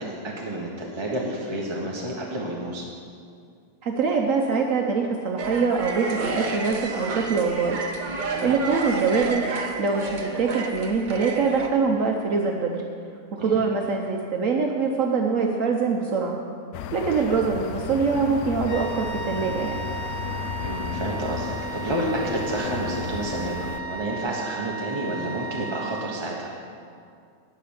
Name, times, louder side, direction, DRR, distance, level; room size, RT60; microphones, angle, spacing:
voice 1, 0.0-2.9 8.3-8.5 13.4-13.6 20.6-26.5, right 1 dB, 20° right, -3 dB, 1.1 m, -30 dB
voice 2, 3.8-7.8 8.4-9.4 9.8-12.8 13.4-16.4 16.9-19.8, right 5 dB, 65° right, 1 dB, 1.1 m, -24 dB
sound 1, 5.4-11.7, right 3 dB, 40° right, 0.7 m, -31 dB
sound 2, 16.7-23.8, left 8 dB, 80° left, 1.1 m, -34 dB
sound 3, 18.6-26.5, right 6 dB, 35° left, 3.1 m, -36 dB
12.0 x 5.0 x 8.7 m, 2.2 s
omnidirectional pair, 1.6 m